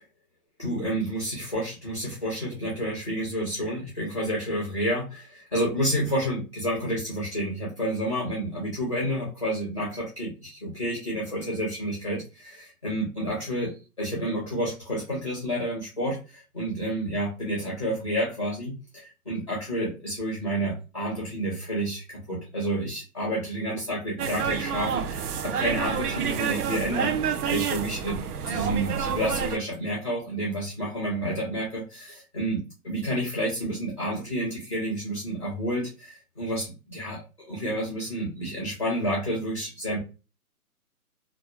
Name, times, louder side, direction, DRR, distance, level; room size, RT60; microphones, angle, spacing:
voice 1, 0.6-13.7 14.0-28.2 28.5-37.2 37.5-40.0, right 1 dB, 20° left, -4 dB, 0.5 m, -30 dB
sound 1, 24.2-29.6, right 7 dB, 75° right, 0.5 m, -28 dB
2.4 x 2.3 x 2.3 m, 0.30 s
hypercardioid pair, 165°, 46 cm